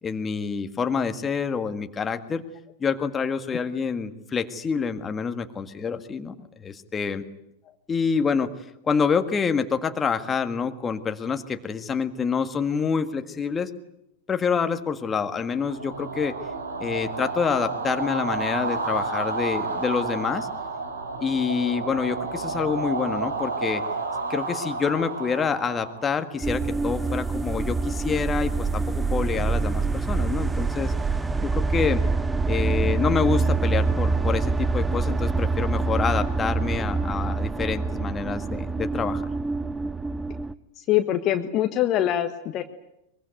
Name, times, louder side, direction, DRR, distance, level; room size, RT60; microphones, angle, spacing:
voice 1, 0.0-2.4 2.8-7.2 7.9-8.5 8.8-13.7 14.3-16.3 16.8-20.5 21.2-23.8 24.3-30.9 31.4-32.0 32.4-39.2, left 6 dB, 20° left, 8 dB, 1.8 m, -27 dB
sound 1, 15.5-26.6, right 3 dB, 70° right, 3.5 m, -31 dB
sound 2, 26.4-40.5, right 4 dB, 10° right, 0.9 m, -25 dB
voice 2, 40.8-42.6, left 12 dB, 35° left, 7 dB, 1.5 m, -24 dB
23.0 x 23.0 x 9.5 m, 0.81 s
figure-of-eight pair, 90°, 0 cm